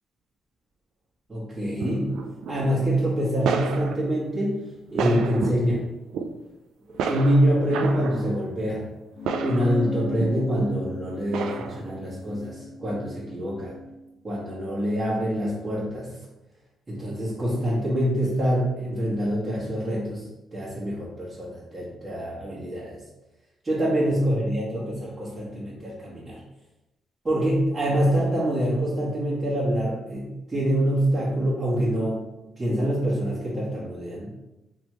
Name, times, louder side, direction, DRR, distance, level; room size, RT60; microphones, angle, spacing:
voice 1, 1.3-2.1 2.5-4.6 4.9-5.8 7.1-8.8 9.4-13.7 14.2-16.1 16.9-20.2 20.5-23.0 23.6-26.4 27.2-32.2 32.6-34.3, equal, 30° right, -11 dB, 1.4 m, -25 dB
sound 1, 1.8-2.7 3.4-4.1 4.7-5.8 6.1-6.3 6.9-8.3 9.2-10.6 11.3-12.1, right 5 dB, 85° right, 0.3 m, -30 dB
sound 2, 9.2-13.9, left 1 dB, 35° left, 0.5 m, -36 dB
3.4 x 3.0 x 3.1 m, 0.99 s
cardioid pair, 90°, 0 cm